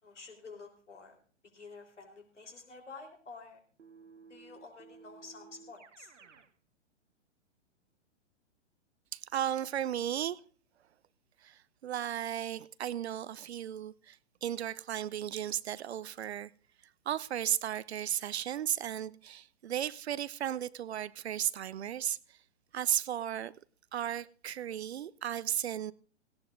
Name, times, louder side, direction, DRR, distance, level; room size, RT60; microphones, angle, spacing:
voice 1, 0.0-1.2 1.5-3.6 4.3-6.1, left 4 dB, 80° left, 3.8 m, -50 dB
Keyboard (musical), 3.8-6.5, right 5 dB, 85° right, 1.1 m, -55 dB
voice 2, 9.1-10.4 11.4-16.5 17.1-22.4 22.7-23.5 23.9-25.9, right 10 dB, 65° right, 0.7 m, -35 dB
17.5 x 17.0 x 2.6 m
figure-of-eight pair, 115°, 36 cm